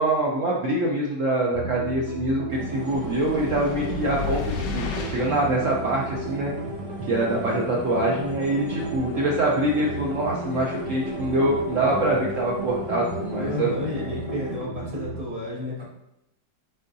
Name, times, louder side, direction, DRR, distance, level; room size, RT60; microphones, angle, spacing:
voice 1, 0.0-4.4 4.7-6.5 7.1-13.7, right 1 dB, 80° right, -3 dB, 0.6 m, -24 dB
sound 1, 1.5-15.3, right 3 dB, 65° right, 1.1 m, -35 dB
sound 2, 2.5-14.6, left 2 dB, 25° left, 0.5 m, -36 dB
sound 3, 2.8-5.5, left 6 dB, 70° left, 0.8 m, -33 dB
voice 2, 13.3-15.8, left 2 dB, 20° right, -8 dB, 1.4 m, -32 dB
4.5 x 3.9 x 2.6 m, 0.84 s
omnidirectional pair, 2.0 m